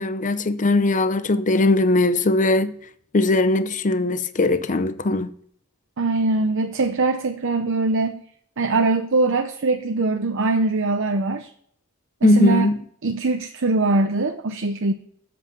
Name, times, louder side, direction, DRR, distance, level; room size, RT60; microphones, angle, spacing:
voice 1, 0.0-2.7 3.1-5.3 12.2-12.8, left 2 dB, 35° left, 0.6 m, -19 dB
voice 2, 6.0-8.2 8.6-11.5 12.2-12.7 13.0-14.9, right 3 dB, 60° right, 0.7 m, -22 dB
8.1 x 7.9 x 5.4 m
head